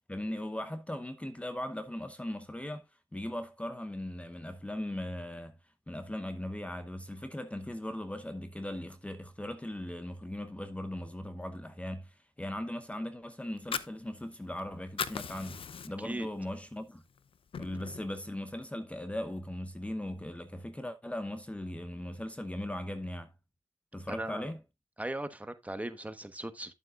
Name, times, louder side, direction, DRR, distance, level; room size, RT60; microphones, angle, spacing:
voice 1, 0.1-2.9 3.1-5.6 5.9-15.6 15.8-17.0 17.6-23.3 23.9-24.6, left 1 dB, 15° left, 0.9 m, -38 dB
Fire, 13.4-14.6 14.9-16.2 16.6-16.8 17.2-18.1, left 6 dB, 65° left, 0.7 m, -38 dB
voice 2, 24.1-24.5 25.0-26.7, right 1 dB, 15° right, 1.2 m, -38 dB
11.5 x 7.5 x 2.4 m
cardioid pair, 70°, 10 cm